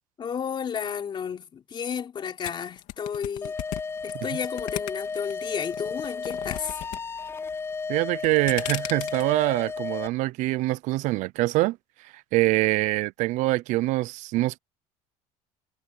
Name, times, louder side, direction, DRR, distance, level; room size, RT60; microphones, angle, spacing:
voice 1, 0.2-3.5 4.0-6.8, left 7 dB, 35° left, 3.5 m, -32 dB
sound 1, 2.4-5.3 5.7-7.0 7.3-7.7 8.1-9.2, left 16 dB, 70° left, 2.8 m, -35 dB
sound 2, 3.4-10.1, left 4 dB, 20° left, 0.4 m, -34 dB
voice 2, 7.9-11.8 12.0-14.6, right 19 dB, 70° right, 0.5 m, -24 dB
cardioid pair, 115°, 13 cm